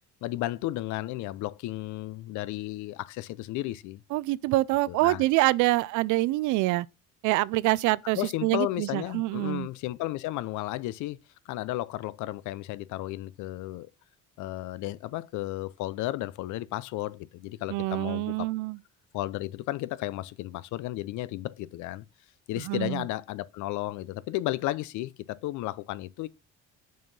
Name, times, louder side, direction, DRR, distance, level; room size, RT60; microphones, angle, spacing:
voice 1, 0.2-4.0 4.9-5.2 8.1-11.2 11.5-13.9 14.4-18.5 19.1-22.0 22.5-26.3, left 16 dB, 75° left, 0.6 m, -33 dB
voice 2, 4.1-6.9 7.2-9.7 17.7-18.8 22.7-23.0, right 19 dB, 80° right, 0.5 m, -26 dB
6.2 x 4.6 x 5.3 m
cardioid pair, 130°, 30 cm